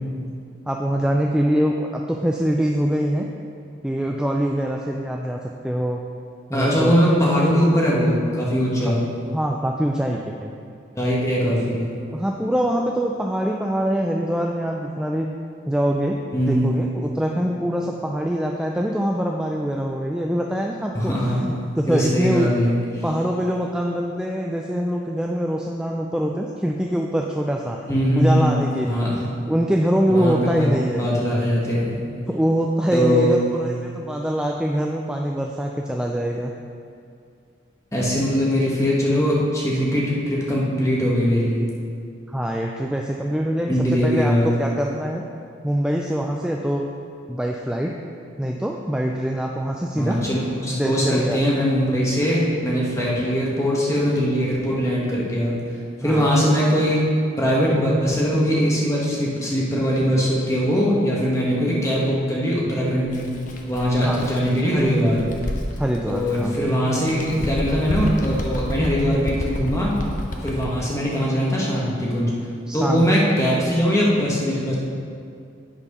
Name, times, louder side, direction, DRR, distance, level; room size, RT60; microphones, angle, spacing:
voice 1, 0.7-3.3 3.8-5.4 5.6-6.0 6.5-7.0 8.8-8.9 9.3-10.5 12.1-15.3 15.7-22.5 23.0-27.9 28.2-29.0 29.5-31.1 32.3-36.5 42.3-45.2 45.6-46.9 47.3-48.0 48.4-50.2 50.7-51.4 56.0-56.3 64.0-64.2 65.8-66.5 72.7-73.1, equal, 5° right, 0 dB, 0.3 m, -24 dB
voice 2, 6.5-9.0 10.9-11.8 16.3-16.8 20.9-21.4 21.9-22.8 27.9-28.5 28.9-29.2 30.1-32.0 32.9-33.4 37.9-41.6 43.7-44.5 49.9-55.5 56.0-63.3 63.7-65.3 66.1-70.0 70.4-72.3 72.7-74.7, equal, 15° left, -5 dB, 1.5 m, -21 dB
Bird, 63.0-66.6 67.0-70.8, left 1 dB, 45° left, 0.8 m, -30 dB
9.9 x 4.5 x 5.5 m, 2.4 s
head